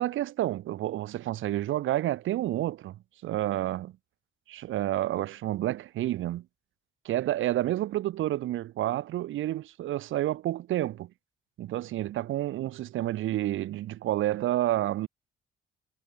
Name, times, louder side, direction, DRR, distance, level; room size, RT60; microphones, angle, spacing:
voice 1, 0.0-3.0 3.2-3.9 4.5-6.4 7.0-11.1 11.6-15.1, right 14 dB, 80° right, 1.8 m, -29 dB
cardioid pair, 90°, 20 cm